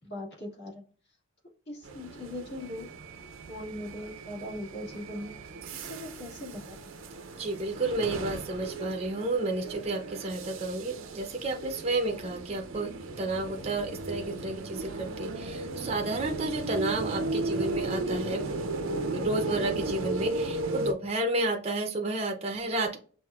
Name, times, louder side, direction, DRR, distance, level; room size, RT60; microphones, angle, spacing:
voice 1, 0.0-0.8 1.7-2.9 3.5-7.0, left 1 dB, 50° left, -2 dB, 2.1 m, -40 dB
sound 1, 1.8-20.9, right 3 dB, 75° right, 0.6 m, -36 dB
voice 2, 7.3-12.9 13.2-18.4 19.1-23.0, right 2 dB, 30° right, 3 dB, 0.6 m, -31 dB
5.8 x 2.6 x 2.4 m, 0.39 s
head